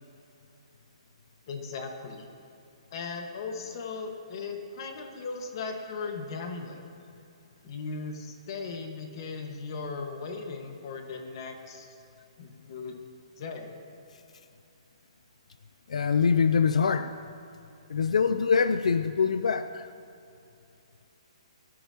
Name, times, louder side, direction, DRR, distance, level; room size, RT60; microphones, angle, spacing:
voice 1, 1.5-2.3 2.9-6.8 7.6-11.9 12.4-13.0 13.4-13.7, left 4 dB, 45° left, 4 dB, 1.5 m, -37 dB
voice 2, 15.9-17.1 17.9-19.9, left 6 dB, 85° left, 11 dB, 0.4 m, -24 dB
20.0 x 13.0 x 2.9 m, 2.8 s
hypercardioid pair, 165°, 3 cm